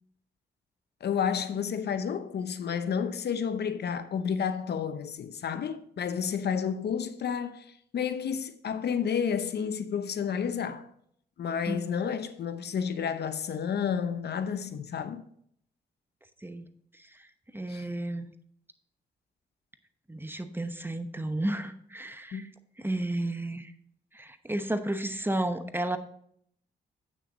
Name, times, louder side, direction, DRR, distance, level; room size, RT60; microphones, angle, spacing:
voice 1, 1.0-7.7 7.9-10.9 11.4-15.2 17.7-17.8 22.3-22.5, left 7 dB, 65° left, 0.7 m, -31 dB
voice 2, 17.5-18.3 20.1-22.5 22.8-23.7 24.1-26.0, right 1 dB, 10° right, 0.9 m, -32 dB
8.9 x 6.4 x 3.9 m
supercardioid pair, 55°, 19 cm